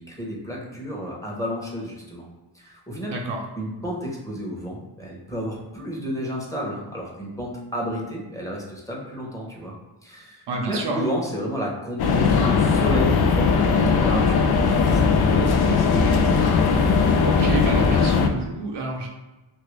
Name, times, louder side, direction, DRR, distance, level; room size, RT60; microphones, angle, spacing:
voice 1, 0.0-2.3 2.5-3.1 3.6-9.7 10.0-16.2, equal, 5° left, -3 dB, 1.0 m, -32 dB
voice 2, 3.1-3.4 10.5-11.1 17.2-19.1, right 2 dB, 60° right, 1 dB, 0.7 m, -29 dB
sound 1, 12.0-18.3, left 5 dB, 55° left, 0.5 m, -19 dB
2.8 x 2.7 x 3.2 m, 1.1 s
cardioid pair, 75°, 47 cm